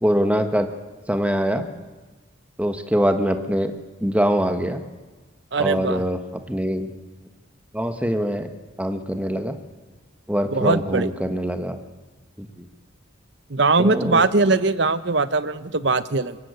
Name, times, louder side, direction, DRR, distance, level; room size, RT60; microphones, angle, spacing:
voice 1, 0.0-0.7 1.1-1.6 2.6-3.7 4.0-4.8 5.6-6.2 6.5-6.9 7.7-8.5 8.8-9.5 10.3-11.8 12.4-12.7 13.8-14.2, equal, 5° right, 7 dB, 1.5 m, -23 dB
voice 2, 5.5-6.0 10.5-11.1 13.5-16.4, right 3 dB, 60° right, 14 dB, 1.0 m, -21 dB
25.0 x 23.5 x 8.1 m, 1.3 s
head